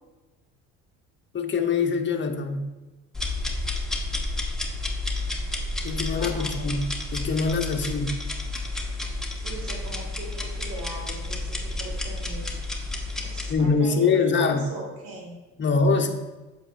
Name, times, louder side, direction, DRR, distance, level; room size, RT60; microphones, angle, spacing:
voice 1, 1.3-2.7 5.8-8.1 13.5-14.6 15.6-16.1, left 4 dB, 30° left, 3 dB, 1.0 m, -24 dB
sound 1, 3.1-13.5, left 2 dB, ahead, 1.1 m, -31 dB
voice 2, 6.1-6.7 9.4-12.5 13.2-15.3, right 2 dB, 80° right, -1 dB, 2.2 m, -39 dB
7.5 x 6.5 x 2.6 m, 1.1 s
supercardioid pair, 85°, 35 cm